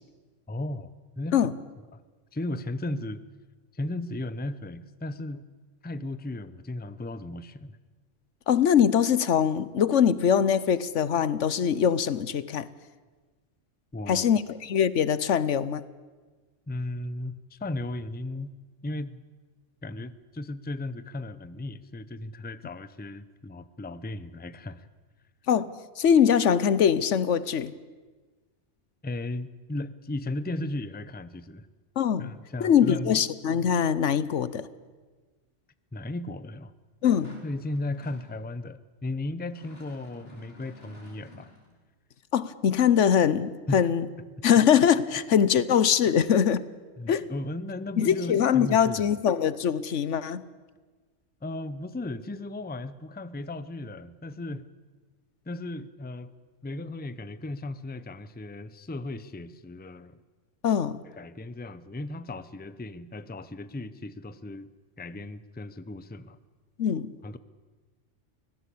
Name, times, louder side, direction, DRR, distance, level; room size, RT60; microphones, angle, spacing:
voice 1, 0.5-1.4 1.9-2.0 2.3-3.2 3.7-5.4 5.8-7.8 13.9-14.4 16.7-18.5 18.8-19.2 19.8-24.9 29.0-31.7 32.2-33.2 35.9-36.7 37.4-41.5 43.7-43.9 47.0-49.2 51.4-54.7 55.5-56.3 56.6-60.2 61.2-64.7 65.0-66.4 67.2-67.4, left 2 dB, 10° left, 14 dB, 0.6 m, -36 dB
voice 2, 8.5-12.7 14.1-15.8 25.5-27.7 32.0-32.3 32.6-34.7 37.0-37.4 42.3-44.1 44.4-46.6 47.1-47.3 48.0-50.4 60.6-61.0 66.8-67.1, left 8 dB, 75° left, 17 dB, 1.2 m, -23 dB
sound 1, 37.0-38.3 39.4-41.7, left 1 dB, 55° left, 5.4 m, -50 dB
24.5 x 17.5 x 8.5 m, 1.4 s
omnidirectional pair, 1.2 m